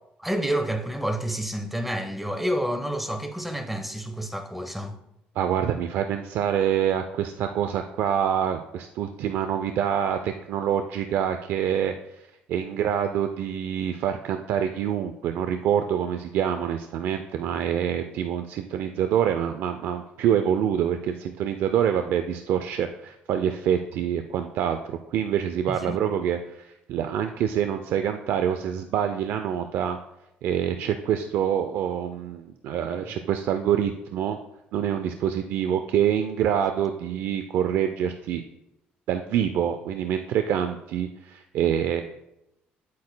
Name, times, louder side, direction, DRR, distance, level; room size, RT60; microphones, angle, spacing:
voice 1, 0.2-5.0 25.7-26.0 33.0-33.1, right 1 dB, 5° right, 1.0 m, -29 dB
voice 2, 5.4-11.9 12.5-30.0 30.4-34.4 34.7-38.4 39.1-42.0, right 9 dB, 75° right, 0.5 m, -26 dB
10.5 x 8.3 x 2.2 m
cardioid pair, 90°, 4 cm